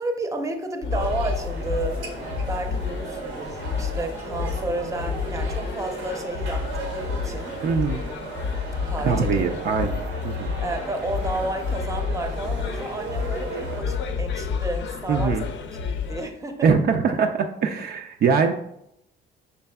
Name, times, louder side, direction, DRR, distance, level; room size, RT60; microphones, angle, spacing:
voice 1, 0.0-2.0 2.5-7.6 8.9-9.4 9.8-9.9 10.6-15.4 16.1-16.7, right 2 dB, 15° right, 4 dB, 0.6 m, -31 dB
sound 1, 0.8-16.2, left 5 dB, 65° left, 0.5 m, -30 dB
sound 2, 0.9-13.8, right 3 dB, 90° right, 0.9 m, -36 dB
voice 2, 7.6-8.0 9.0-10.5 15.1-15.5 16.6-18.5, right 5 dB, 55° right, 4 dB, 0.4 m, -22 dB
5.5 x 3.3 x 2.2 m, 0.79 s
cardioid pair, 90°, 20 cm